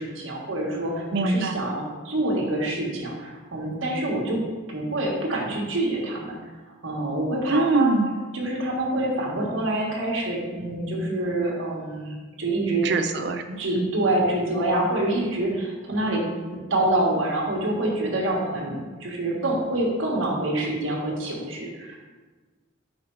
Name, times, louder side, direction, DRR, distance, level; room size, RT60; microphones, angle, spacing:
voice 1, 0.0-4.4 4.7-6.3 6.8-7.9 8.3-12.9 13.6-16.2 16.5-22.0, right 1 dB, 75° right, -2 dB, 1.5 m, -26 dB
voice 2, 1.1-1.6 7.5-8.1 12.8-13.9, right 3 dB, 55° right, 7 dB, 0.5 m, -23 dB
5.1 x 5.0 x 4.6 m, 1.3 s
head